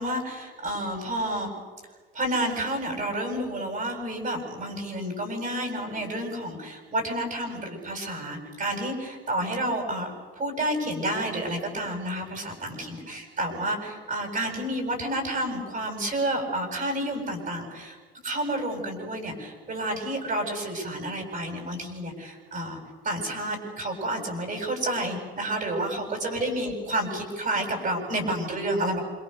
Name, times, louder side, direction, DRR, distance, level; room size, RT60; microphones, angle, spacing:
voice 1, 0.0-1.5 2.1-18.0 18.2-22.8 23.0-29.0, right 1 dB, 25° right, 2 dB, 7.6 m, -30 dB
28.0 x 26.5 x 6.9 m, 1.4 s
figure-of-eight pair, 70°, 30 cm